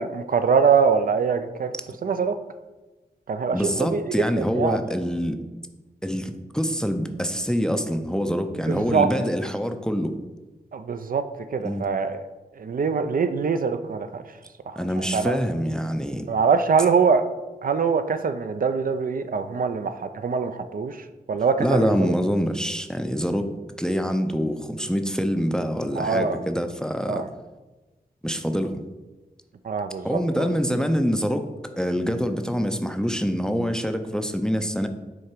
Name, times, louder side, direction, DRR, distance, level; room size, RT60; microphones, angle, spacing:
voice 1, 0.0-1.7 2.0-2.4 3.3-4.8 8.7-9.1 10.7-11.2 11.5-12.2 12.6-14.2 14.7-14.8 15.1-15.4 16.3-17.2 17.6-21.0 21.3-22.1 26.0-26.4 27.1-27.3 29.6-30.5, right 5 dB, 60° right, 9 dB, 0.4 m, -23 dB
voice 2, 3.5-5.4 6.0-10.1 11.6-11.9 14.8-16.3 21.6-23.5 23.8-27.2 28.2-28.8 30.0-31.5 31.8-34.9, equal, 5° left, 8 dB, 0.4 m, -25 dB
6.3 x 3.8 x 4.5 m, 1.2 s
wide cardioid pair, 95°, 16 cm